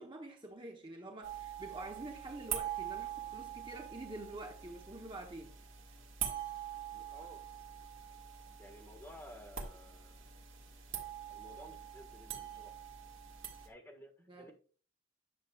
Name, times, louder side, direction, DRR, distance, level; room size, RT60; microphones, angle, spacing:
voice 1, 0.0-5.6 14.3-14.5, right 2 dB, 25° right, 0.9 m, -47 dB
sound 1, 1.2-13.7, right 9 dB, 70° right, 1.8 m, -44 dB
voice 2, 6.9-7.4 8.6-10.3 11.3-12.8 13.6-14.1 14.4-14.5, equal, 10° left, 1.7 m, -54 dB
10.0 x 6.7 x 2.4 m
head